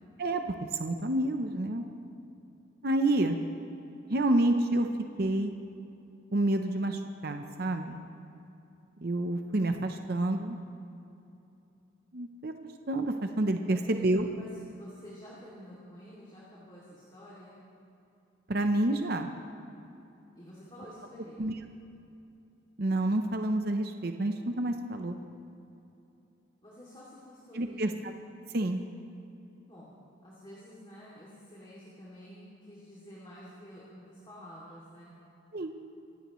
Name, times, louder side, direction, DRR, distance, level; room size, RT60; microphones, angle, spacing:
voice 1, 0.2-1.8 2.8-3.4 4.1-4.9 5.2-5.5 6.3-8.0 9.0-10.6 12.1-12.5 12.9-14.3 18.5-19.3 21.4-21.6 22.8-25.2 27.5-27.9 28.5-28.8 35.5-35.7, right 1 dB, 50° right, 6 dB, 0.7 m, -28 dB
voice 2, 13.6-17.6 20.4-21.6 26.6-28.0 29.7-29.9 30.2-35.1, equal, 25° left, -7 dB, 2.6 m, -49 dB
25.0 x 16.0 x 3.1 m, 2.8 s
head